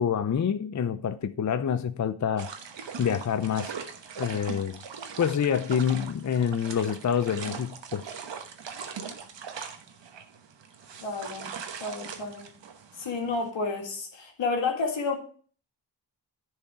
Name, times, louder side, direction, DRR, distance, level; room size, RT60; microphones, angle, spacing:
voice 1, 0.0-2.5 3.0-3.7 4.2-4.8 5.2-8.0, left 8 dB, 40° left, 0.6 m, -27 dB
sound 1, 2.4-13.5, right 6 dB, 75° right, 1.1 m, -41 dB
voice 2, 11.0-11.5 11.8-12.5 13.0-15.2, left 4 dB, 85° left, 1.9 m, -30 dB
10.0 x 4.7 x 4.8 m
cardioid pair, 55°, 44 cm